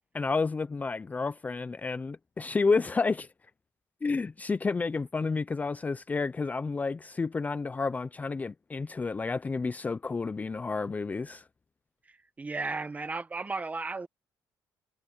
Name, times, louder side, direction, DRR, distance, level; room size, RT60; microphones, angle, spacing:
voice 1, 0.1-3.3 4.0-11.4, left 4 dB, 20° left, 0.6 m, -30 dB
voice 2, 12.4-14.1, right 3 dB, 20° right, 1.3 m, -34 dB
cardioid pair, 115°, 7 cm